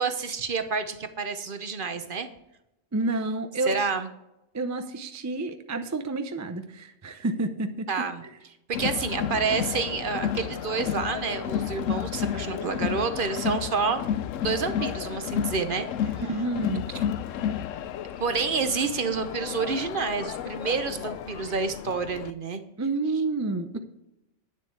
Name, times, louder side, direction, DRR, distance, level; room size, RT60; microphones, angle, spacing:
voice 1, 0.0-2.3 3.7-4.1 7.9-8.2 8.7-14.1 14.4-16.1 18.2-22.6, right 5 dB, 50° right, 9 dB, 0.9 m, -29 dB
voice 2, 2.9-3.8 4.5-7.9 16.3-16.8 22.8-23.8, right 2 dB, 20° right, 8 dB, 0.4 m, -29 dB
Crowd, 8.7-22.3, left 9 dB, 85° left, 1.0 m, -32 dB
9.7 x 7.2 x 4.7 m, 0.87 s
omnidirectional pair, 1.3 m